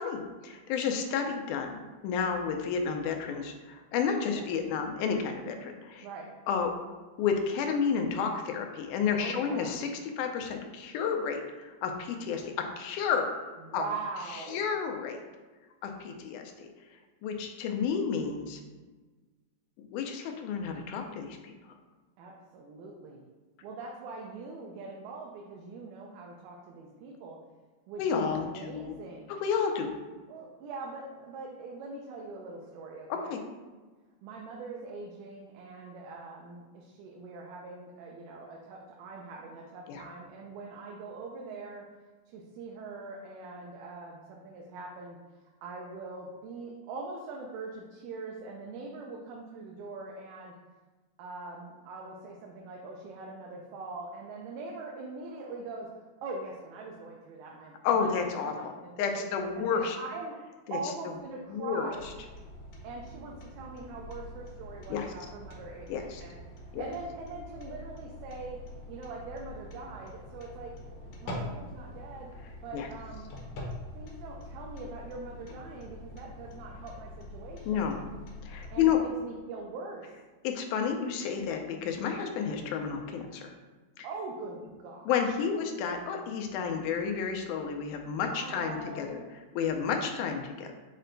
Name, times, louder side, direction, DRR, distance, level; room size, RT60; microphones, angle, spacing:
voice 1, 0.0-6.1 6.5-6.7 7.2-9.9 10.2-13.3 13.7-13.9 14.3-15.2 15.8-16.7 17.2-18.6 19.8-21.5 28.0-29.0 29.4-30.0 33.1-33.4 39.9-40.0 57.8-58.7 59.0-60.0 60.7-60.8 61.5-61.9 64.9-65.1 65.9-66.2 66.7-66.8 72.7-72.9 77.7-78.0 78.4-79.0 80.4-83.5 84.0-84.1 85.1-89.2 89.5-90.7, left 6 dB, 90° left, 4 dB, 2.1 m, -31 dB
voice 2, 9.2-9.8 13.6-14.6 22.2-23.2 23.6-27.4 27.9-29.4 30.3-33.4 34.2-41.8 42.3-45.2 45.6-50.5 51.2-55.9 56.2-58.3 58.5-59.3 59.6-60.4 60.7-62.1 62.8-66.4 66.8-68.6 68.9-72.3 72.6-73.3 73.9-77.8 78.7-80.1 84.0-85.0 88.3-89.4, right 3 dB, 85° right, -1 dB, 2.0 m, -42 dB
sound 1, 61.9-79.0, left 1 dB, 70° left, 1.4 m, -44 dB
6.2 x 2.2 x 3.8 m, 1.3 s
omnidirectional pair, 3.5 m